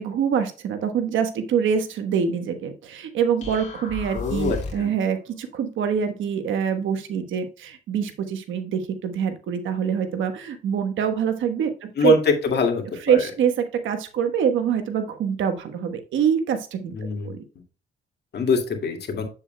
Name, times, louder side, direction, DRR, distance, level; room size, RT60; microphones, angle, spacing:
voice 1, 0.0-12.1 13.0-16.9 17.2-17.4, right 7 dB, 75° right, 7 dB, 1.2 m, -24 dB
sound 1, 3.4-5.0, left 3 dB, 35° left, 2.8 m, -34 dB
voice 2, 4.1-4.9 12.0-12.2 12.5-13.2 16.9-17.4 18.3-19.2, left 5 dB, 55° left, 3 dB, 2.2 m, -25 dB
8.2 x 7.2 x 2.2 m, 0.36 s
cardioid pair, 90°, 20 cm